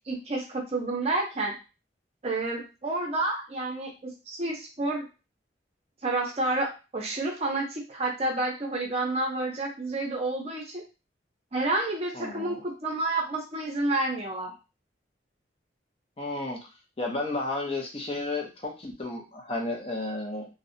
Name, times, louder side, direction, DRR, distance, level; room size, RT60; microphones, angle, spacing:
voice 1, 0.1-1.5 2.2-5.1 6.0-10.8 11.5-14.5, right 2 dB, 35° right, 0 dB, 0.6 m, -29 dB
voice 2, 12.1-12.6 16.2-16.6 17.0-20.5, left 2 dB, 30° left, 0 dB, 0.5 m, -32 dB
2.6 x 2.1 x 2.5 m, 0.30 s
head